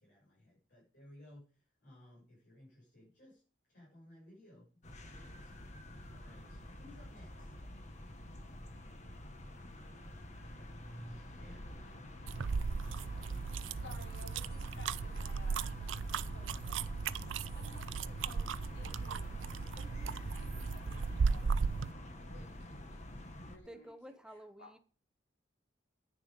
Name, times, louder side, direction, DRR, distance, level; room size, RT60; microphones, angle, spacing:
voice 1, 0.0-3.4 3.7-4.7 5.1-5.6 6.0-7.5 10.9-11.9, left 1 dB, 60° left, 6.7 m, -59 dB
sound 1, 4.8-23.6, left 1 dB, 40° left, 1.5 m, -48 dB
sound 2, 12.3-21.9, right 5 dB, 90° right, 0.5 m, -36 dB
voice 2, 13.8-15.7 16.1-22.8 23.5-24.1 24.6-24.7, left 2 dB, 85° left, 5.2 m, -57 dB
voice 3, 23.6-24.8, equal, 5° right, 0.8 m, -51 dB
10.5 x 9.5 x 5.2 m
head